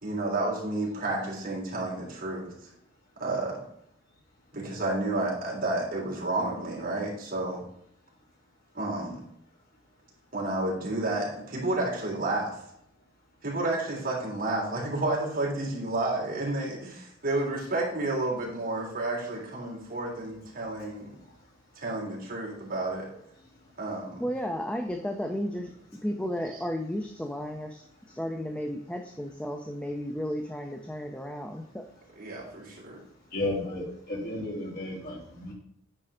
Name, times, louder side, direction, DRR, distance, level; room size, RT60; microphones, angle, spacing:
voice 1, 0.0-2.5 3.2-3.6 4.5-7.6 8.7-9.2 10.3-12.6 13.4-21.1 21.8-23.1 23.8-24.2 26.5-26.6 32.2-33.0, right 2 dB, 50° right, -3 dB, 3.5 m, -31 dB
voice 2, 24.2-25.7 26.0-27.8 28.1-31.8, equal, 5° left, 3 dB, 0.6 m, -33 dB
voice 3, 33.3-35.5, left 1 dB, 50° left, -4 dB, 3.5 m, -33 dB
10.0 x 4.6 x 5.0 m, 0.73 s
head